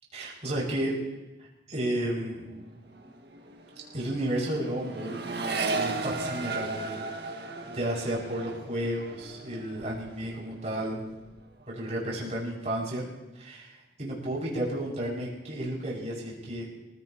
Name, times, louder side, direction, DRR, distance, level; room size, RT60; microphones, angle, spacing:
voice 1, 0.1-1.0 1.7-2.5 3.9-5.2 5.7-7.0 7.3-11.0 11.7-13.0 13.4-16.7, right 1 dB, 40° right, -4 dB, 6.1 m, -32 dB
Accelerating revving vroom, 2.4-2.7 2.9-10.5 10.8-11.4, right 3 dB, 60° right, 1.9 m, -36 dB
26.5 x 16.5 x 3.0 m, 1.1 s
head